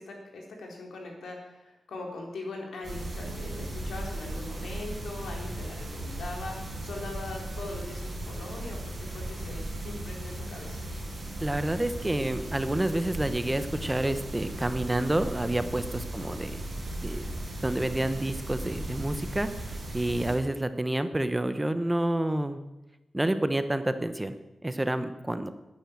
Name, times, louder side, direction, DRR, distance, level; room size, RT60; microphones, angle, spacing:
voice 1, 0.0-10.8 16.1-16.3, left 2 dB, 90° left, 0 dB, 4.0 m, -41 dB
sound 1, 2.8-20.4, right 1 dB, 25° right, 5.3 m, -37 dB
voice 2, 11.4-16.5 17.0-17.3 17.6-22.6 23.1-24.3 24.6-25.5, right 1 dB, 10° right, 10 dB, 0.8 m, -29 dB
12.0 x 10.5 x 8.9 m, 1.0 s
wide cardioid pair, 165°, 0 cm